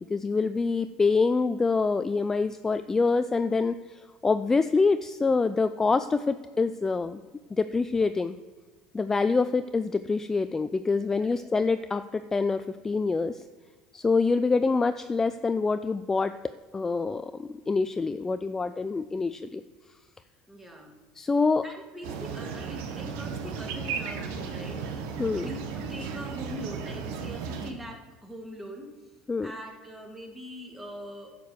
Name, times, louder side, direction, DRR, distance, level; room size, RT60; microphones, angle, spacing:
voice 1, 0.0-7.2 7.5-8.4 8.9-13.4 13.9-19.6 21.2-21.6 25.2-25.5 29.3-29.5, left 4 dB, 20° left, 11 dB, 0.3 m, -26 dB
voice 2, 20.5-21.0 21.6-28.9 29.4-31.4, equal, 10° right, 2 dB, 2.1 m, -42 dB
sound 1, 22.0-27.7, right 5 dB, 75° right, 1.0 m, -35 dB
10.0 x 5.2 x 6.6 m, 1.3 s
supercardioid pair, 95°, 2 cm